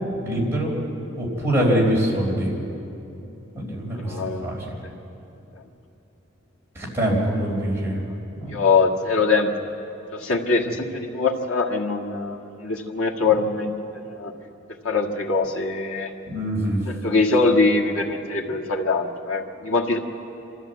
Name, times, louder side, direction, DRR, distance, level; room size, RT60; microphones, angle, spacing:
voice 1, 0.2-0.7 1.2-2.5 3.5-4.6 6.7-8.0 8.4-8.6 16.2-16.8, equal, 10° right, -4 dB, 4.4 m, -24 dB
voice 2, 3.9-4.5 8.5-9.5 10.1-13.7 14.1-14.3 14.8-16.1 16.9-20.0, left 3 dB, 85° left, 1 dB, 1.9 m, -23 dB
26.0 x 14.0 x 8.2 m, 2.9 s
head